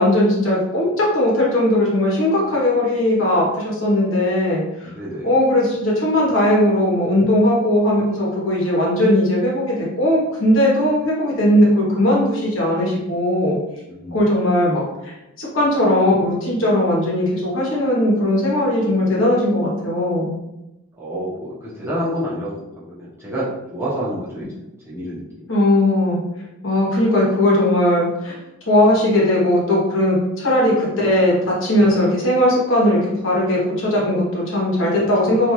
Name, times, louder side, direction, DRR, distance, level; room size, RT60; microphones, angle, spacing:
voice 1, 0.0-4.9 5.2-13.6 14.1-14.8 15.4-20.3 25.5-26.2 26.6-28.3 28.7-35.5, left 1 dB, 65° left, -4 dB, 1.1 m, -18 dB
voice 2, 4.8-5.3 13.9-14.2 21.0-25.2 35.3-35.4, equal, 10° right, -8 dB, 0.8 m, -28 dB
2.6 x 2.4 x 3.0 m, 0.94 s
head